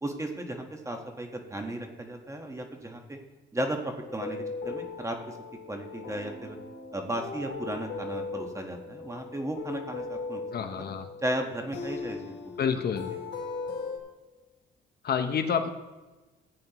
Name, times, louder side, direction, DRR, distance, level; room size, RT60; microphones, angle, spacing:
voice 1, 0.0-3.2 3.5-5.4 5.7-6.6 6.9-10.8 11.2-12.3 12.7-12.8, right 1 dB, 15° right, 4 dB, 1.3 m, -35 dB
sound 1, 4.0-14.0, left 4 dB, 70° left, 2.6 m, -39 dB
voice 2, 10.5-11.1 12.6-13.1 15.0-15.7, left 7 dB, 55° left, 8 dB, 0.8 m, -28 dB
14.5 x 8.6 x 3.0 m, 1.2 s
cardioid pair, 90°, 20 cm